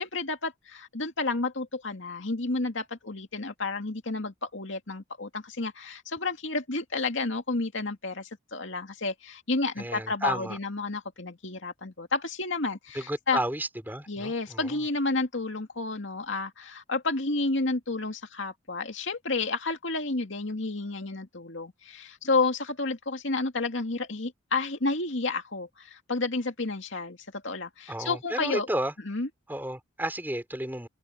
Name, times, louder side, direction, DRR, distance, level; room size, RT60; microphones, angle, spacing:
voice 1, 0.0-13.4 14.1-28.7 29.0-29.3, left 3 dB, 70° left, 2.3 m, -31 dB
voice 2, 9.8-10.6 12.9-14.7 27.9-28.9 29.5-30.9, right 1 dB, 10° right, 3.6 m, -32 dB
head